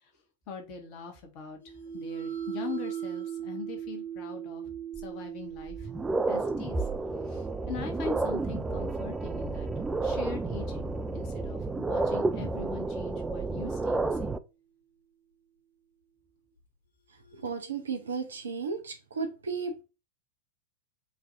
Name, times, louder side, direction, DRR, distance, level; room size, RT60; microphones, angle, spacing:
voice 1, 0.5-1.6 1.9-4.7 5.0-5.9 6.3-6.8 7.2-9.7 10.0-14.4, left 5 dB, 40° left, 1.4 m, -41 dB
sound 1, 1.6-11.6, right 9 dB, 70° left, 1.7 m, -41 dB
sound 2, 5.0-5.1 5.6-14.4, right 3 dB, 10° right, 0.3 m, -31 dB
voice 2, 17.3-19.8, right 5 dB, 70° right, 0.7 m, -34 dB
4.7 x 2.7 x 2.6 m
figure-of-eight pair, 90°, 0 cm